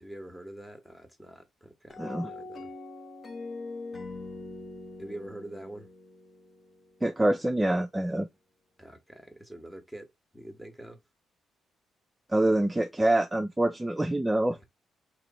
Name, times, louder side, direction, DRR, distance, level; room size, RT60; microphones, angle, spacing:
voice 1, 0.0-2.7 5.0-5.9 8.8-11.0 14.5-14.6, right 1 dB, 5° left, 1.2 m, -45 dB
sound 1, 1.9-7.1, left 3 dB, 30° left, 1.2 m, -42 dB
voice 2, 2.0-2.3 7.0-8.3 12.3-14.6, right 1 dB, 10° right, 0.4 m, -26 dB
3.1 x 3.0 x 4.0 m
cardioid pair, 90°, 0 cm